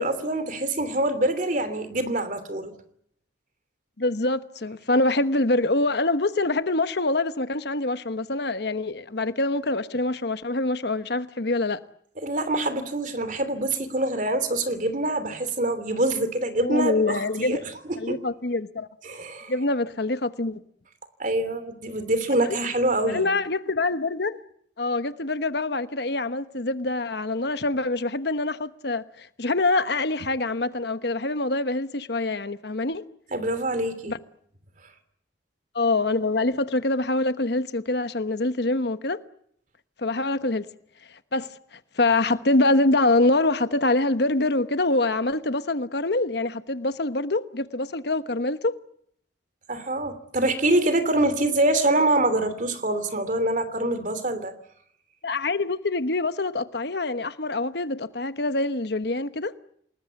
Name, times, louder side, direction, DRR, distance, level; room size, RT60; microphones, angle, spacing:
voice 1, 0.0-2.7 12.2-18.2 19.0-19.5 21.2-23.3 33.3-34.2 49.7-54.5, right 1 dB, 45° right, 3.0 m, -25 dB
voice 2, 4.0-11.8 16.6-17.6 18.0-18.9 19.5-20.6 22.5-22.6 23.1-24.4 24.8-33.0 34.1-34.2 35.7-39.2 40.0-40.7 41.3-48.8 55.2-59.5, left 2 dB, 60° left, 1.1 m, -25 dB
28.0 x 20.0 x 8.3 m
head